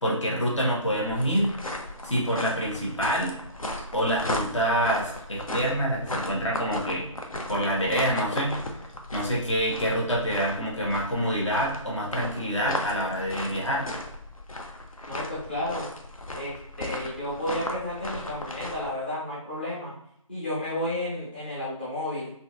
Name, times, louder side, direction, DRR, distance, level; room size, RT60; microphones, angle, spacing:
voice 1, 0.0-1.5 2.0-3.3 3.9-7.1 7.5-8.5 9.1-13.9, equal, 60° left, -3 dB, 1.3 m, -26 dB
sound 1, 0.8-18.9, left 1 dB, 80° left, 0.7 m, -36 dB
voice 2, 15.0-15.9 16.3-19.9 20.3-22.3, left 1 dB, 20° left, -9 dB, 0.6 m, -32 dB
4.2 x 2.6 x 2.4 m, 0.72 s
figure-of-eight pair, 160°, 18 cm